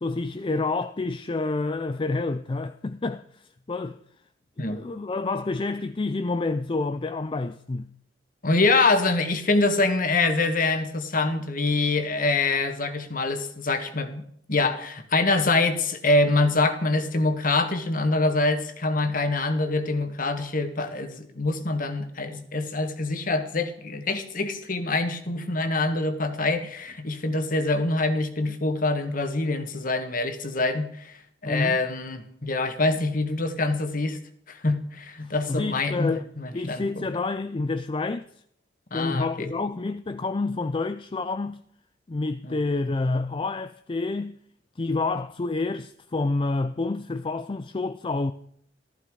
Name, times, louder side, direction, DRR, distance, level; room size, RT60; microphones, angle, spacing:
voice 1, 0.0-4.0 4.7-7.9 31.5-31.8 35.2-36.2 36.5-38.3 38.9-41.6 42.1-44.4 44.8-48.3, left 3 dB, 30° left, 0.4 m, -28 dB
voice 2, 8.4-34.2 34.5-37.1 38.9-39.5 42.4-42.6, left 2 dB, 50° left, 1.6 m, -25 dB
15.0 x 14.0 x 4.8 m
head